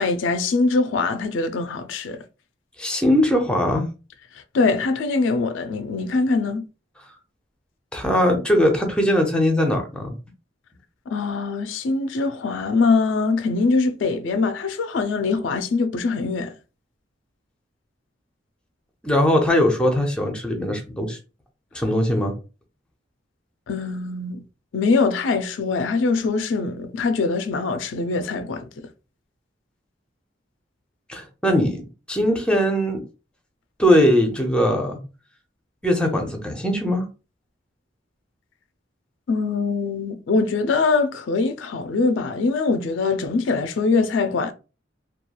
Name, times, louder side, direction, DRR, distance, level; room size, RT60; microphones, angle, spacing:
voice 1, 0.0-2.2 4.5-6.6 11.1-16.5 23.7-24.4 24.7-28.7 39.3-44.5, left 4 dB, 85° left, 0.4 m, -23 dB
voice 2, 2.8-3.8 7.9-10.1 19.0-21.2 21.7-22.3 31.1-33.0 33.8-35.0 35.8-37.0, equal, 5° left, 0.6 m, -20 dB
3.0 x 2.3 x 2.2 m
head